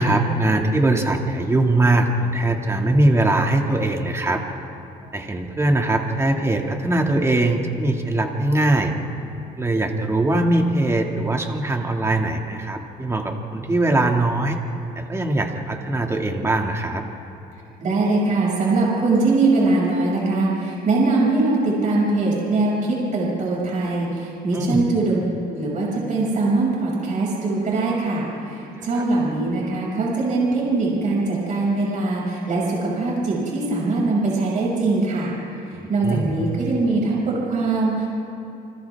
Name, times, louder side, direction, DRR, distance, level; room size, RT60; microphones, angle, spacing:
voice 1, 0.0-4.4 5.1-8.9 9.6-14.6 15.0-17.0 24.5-24.8 29.0-29.1 35.8-36.4, right 2 dB, 15° right, 2 dB, 2.3 m, -21 dB
voice 2, 17.8-25.2 25.5-35.3 35.7-38.1, right 3 dB, 50° right, -5 dB, 6.5 m, -22 dB
29.0 x 25.5 x 3.6 m, 2.7 s
cardioid pair, 110°, 17 cm